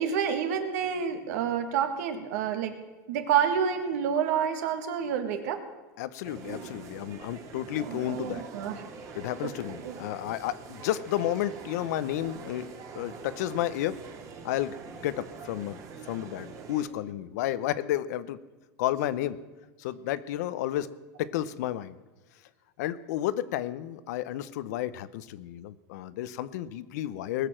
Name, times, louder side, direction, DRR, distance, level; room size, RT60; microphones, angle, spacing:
voice 1, 0.0-2.7 3.1-5.6 7.7-8.8 9.4-9.5 9.8-10.0, right 8 dB, 70° right, 7 dB, 1.9 m, -28 dB
voice 2, 6.0-8.4 9.1-14.0 14.4-18.4 18.8-19.4 19.8-20.9 21.2-22.0 22.8-27.5, left 13 dB, 75° left, 16 dB, 0.7 m, -32 dB
sound 1, 6.2-16.8, right 5 dB, 35° right, 2.0 m, -44 dB
20.0 x 6.9 x 7.5 m, 1.2 s
supercardioid pair, 150°, 9 cm